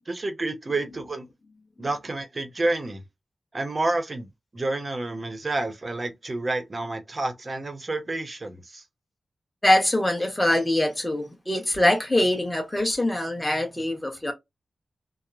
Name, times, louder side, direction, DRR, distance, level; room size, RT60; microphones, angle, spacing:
voice 1, 0.1-1.2 1.8-3.0 3.5-4.3 4.5-8.8, right 2 dB, 35° right, 0.7 m, -29 dB
voice 2, 9.6-14.3, left 1 dB, 15° left, 1.2 m, -23 dB
2.9 x 2.0 x 2.4 m
wide cardioid pair, 105°, 0 cm